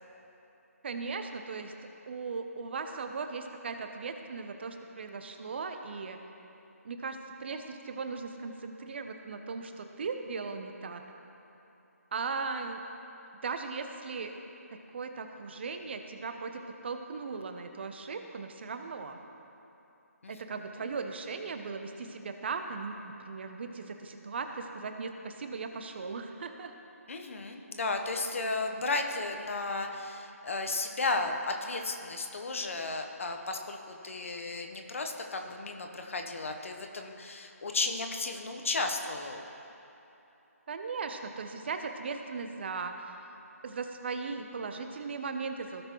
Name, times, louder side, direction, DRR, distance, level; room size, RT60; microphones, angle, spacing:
voice 1, 0.8-1.7 2.1-6.2 6.8-11.0 12.1-12.8 13.4-14.3 14.7-19.2 20.3-26.7 40.7-43.1 43.6-45.8, right 4 dB, 45° right, 6 dB, 0.8 m, -38 dB
voice 2, 27.1-39.4, left 3 dB, 55° left, 4 dB, 1.1 m, -34 dB
17.0 x 6.6 x 3.1 m, 3.0 s
figure-of-eight pair, 155°, 8 cm